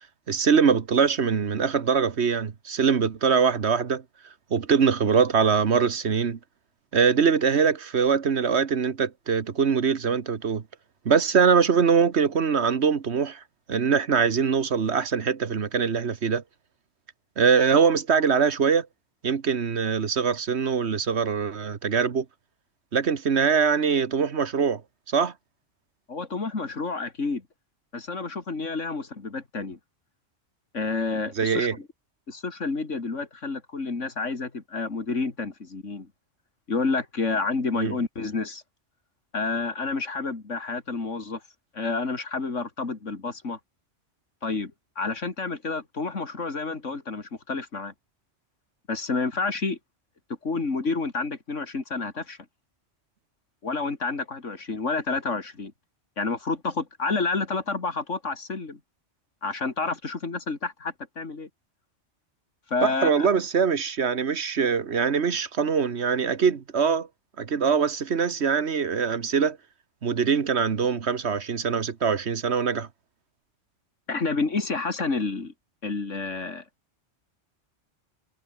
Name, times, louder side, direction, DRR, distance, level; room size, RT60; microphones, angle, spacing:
voice 1, 0.3-4.0 4.5-6.4 6.9-10.6 11.0-13.4 13.7-16.4 17.4-18.9 19.2-22.2 22.9-24.8 25.1-25.3 31.4-31.7 37.8-38.0 62.8-67.1 67.4-69.6 70.0-72.9, right 6 dB, 65° right, 1.5 m, -23 dB
voice 2, 26.1-27.4 27.9-29.8 30.7-31.7 32.3-36.1 36.7-38.6 39.3-41.4 41.7-43.6 44.4-47.9 48.9-49.8 50.4-52.4 53.6-55.7 56.2-58.8 59.4-61.5 62.7-63.3 74.1-75.5 75.8-76.6, left 3 dB, 85° left, 3.1 m, -29 dB
omnidirectional pair, 1.2 m